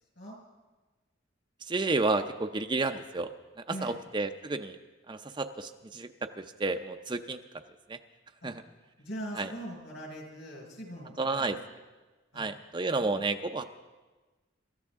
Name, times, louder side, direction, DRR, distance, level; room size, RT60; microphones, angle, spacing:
voice 1, 1.6-3.3 3.8-4.8 5.1-6.1 6.4-7.4 7.9-8.0 8.4-8.5 9.4-9.5 11.2-11.6 12.4-13.6, right 3 dB, 25° right, 7 dB, 0.5 m, -31 dB
voice 2, 3.7-4.0 8.4-8.5 9.0-11.6 12.3-12.4, equal, 65° left, 0 dB, 5.5 m, -42 dB
26.0 x 14.0 x 3.6 m, 1.2 s
head